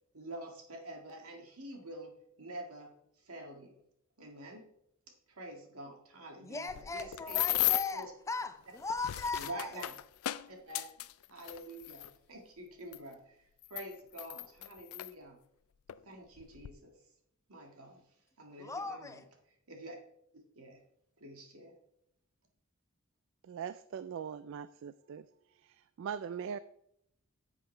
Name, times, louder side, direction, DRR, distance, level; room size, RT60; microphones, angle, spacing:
voice 1, 0.1-2.1 2.4-2.9 3.2-3.8 4.2-4.6 5.3-8.1 9.3-10.0 10.5-10.8 11.3-15.4 16.0-17.0 17.5-18.0 18.4-19.2 19.7-20.0 20.5-20.8 21.2-21.7, right 1 dB, 85° right, 1.9 m, -47 dB
voice 2, 6.4-9.8 18.6-19.2, left 4 dB, 15° left, 0.5 m, -38 dB
sound 1, 6.7-8.0 8.8-12.1 12.9-13.0 13.6-15.1 15.9-16.0 16.4-16.7, left 16 dB, 75° left, 0.4 m, -35 dB
voice 3, 23.4-25.2 25.5-26.6, right 7 dB, 60° right, 0.3 m, -41 dB
10.0 x 7.3 x 3.3 m
head